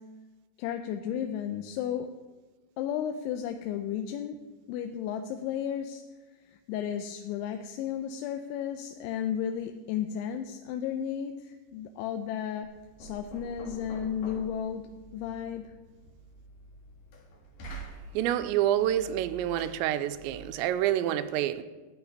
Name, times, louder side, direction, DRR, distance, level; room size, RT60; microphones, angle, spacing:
voice 1, 0.6-2.1 2.8-4.4 4.7-6.0 6.4-12.7 13.0-15.7, left 9 dB, 90° left, 3.1 m, -33 dB
Knock, 12.6-20.5, right 2 dB, 55° left, 3.1 m, -47 dB
voice 2, 18.1-21.6, right 12 dB, 90° right, 2.9 m, -27 dB
14.0 x 5.9 x 9.8 m
omnidirectional pair, 5.2 m